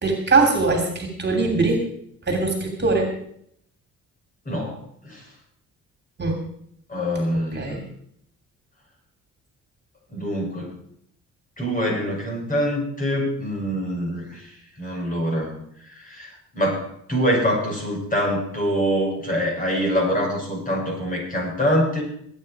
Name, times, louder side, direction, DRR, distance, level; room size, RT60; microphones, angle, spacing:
voice 1, 0.0-1.8 2.3-3.1 6.2-6.4 7.5-7.8, right 3 dB, 35° right, 4 dB, 2.9 m, -21 dB
voice 2, 4.4-5.3 6.9-7.8 10.1-10.7 11.6-22.0, equal, 25° left, -1 dB, 7.8 m, -25 dB
20.0 x 9.1 x 4.8 m, 0.68 s
cardioid pair, 90°, 30 cm